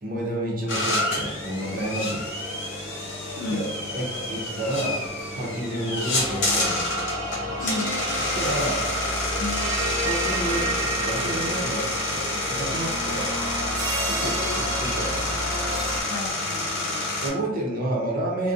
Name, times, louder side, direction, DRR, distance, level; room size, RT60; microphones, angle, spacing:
voice 1, 0.0-2.3 3.5-3.7 3.9-5.0 5.3-6.9 8.2-8.9 10.0-13.4 14.0-15.5 17.2-18.5, right 1 dB, 40° right, -3 dB, 0.6 m, -30 dB
sound 1, 0.7-17.3, left 2 dB, 55° left, 0.8 m, -29 dB
voice 2, 3.4-3.7 7.6-8.0 9.4-9.7 14.4-14.7 16.1-17.1, left 2 dB, 75° left, 5 dB, 0.3 m, -33 dB
sound 2, 6.1-16.0, right 1 dB, 80° right, 0.6 m, -30 dB
2.5 x 2.1 x 2.4 m, 1.1 s
head